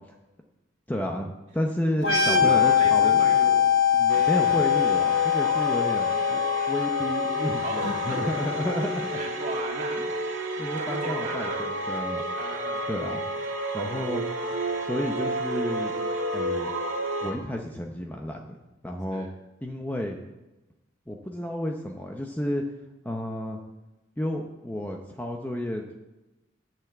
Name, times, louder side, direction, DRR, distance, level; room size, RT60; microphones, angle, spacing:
voice 1, 0.9-3.3 3.9-9.1 10.6-12.2 12.9-13.2 13.7-14.2 14.8-15.9 16.3-16.7 17.2-18.6 18.8-19.3 19.6-20.2 21.1-22.6 23.0-23.6 24.2-25.9, left 1 dB, 10° left, 2 dB, 0.7 m, -31 dB
sound 1, 2.0-9.5, left 9 dB, 80° left, 1.4 m, -23 dB
voice 2, 2.0-3.6 7.6-8.2 9.1-10.0 10.8-11.7 12.3-13.0 19.1-19.3, right 1 dB, 35° right, 0 dB, 2.1 m, -35 dB
sound 2, 4.1-17.3, right 1 dB, 70° right, 1.7 m, -31 dB
10.5 x 5.9 x 7.9 m, 1.0 s
head